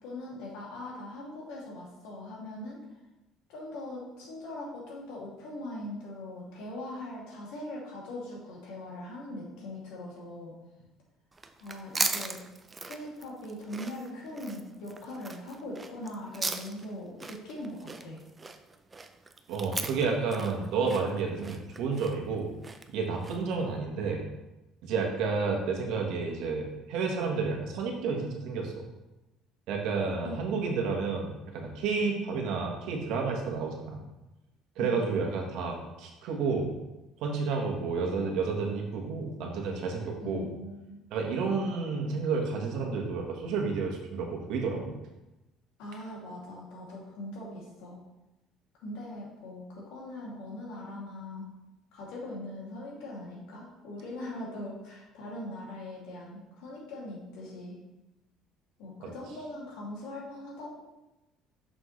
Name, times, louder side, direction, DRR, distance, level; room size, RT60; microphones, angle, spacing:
voice 1, 0.0-2.8 3.5-10.6 11.6-12.4 12.8-18.2 30.2-30.4 32.0-32.1 34.8-34.9 40.2-41.0 45.8-48.0 48.8-51.5 51.9-57.8 58.8-60.8, left 1 dB, 90° left, -4 dB, 2.4 m, -41 dB
sound 1, 11.3-23.6, right 3 dB, 15° right, 0.4 m, -38 dB
voice 2, 19.5-22.5 22.9-24.2 24.8-28.8 29.7-34.0 34.8-36.7 37.2-40.5 41.1-45.0 59.0-59.1, right 4 dB, 65° right, 1 dB, 1.3 m, -31 dB
6.3 x 6.1 x 3.2 m, 1.0 s
cardioid pair, 165°, 0 cm